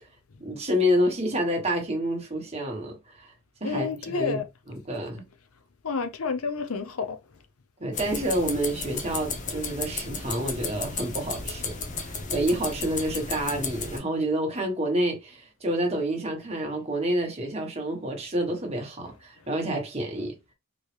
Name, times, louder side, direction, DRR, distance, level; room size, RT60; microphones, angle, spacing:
voice 1, 0.4-3.3 3.6-4.4 4.7-5.2 7.8-20.3, equal, 30° right, 1.3 m, -28 dB
voice 2, 3.6-4.4 5.8-7.2 12.0-12.1, left 5 dB, 70° left, 0.7 m, -29 dB
sound 1, 7.9-14.0, left 4 dB, 35° left, 0.8 m, -34 dB
4.4 x 3.1 x 3.3 m
head